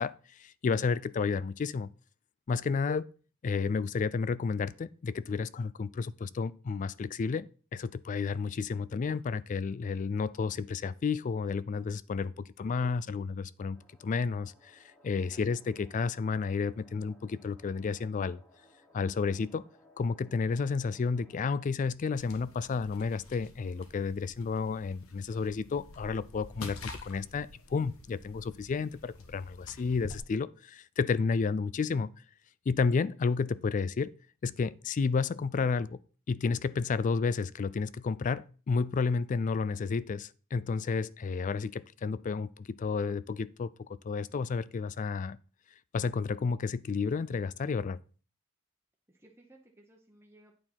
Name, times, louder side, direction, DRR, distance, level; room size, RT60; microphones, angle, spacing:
voice 1, 0.0-1.9 2.5-3.0 3.4-18.4 18.9-19.7 20.0-32.1 32.7-34.1 34.4-36.0 36.3-45.4 45.9-48.0, left 5 dB, 35° left, 0.3 m, -31 dB
sound 1, 13.7-21.5, left 1 dB, 10° left, 1.5 m, -62 dB
sound 2, 22.1-30.2, left 2 dB, 85° left, 1.4 m, -48 dB
voice 2, 49.1-50.6, right 1 dB, 10° right, 0.9 m, -59 dB
8.8 x 4.5 x 5.6 m
head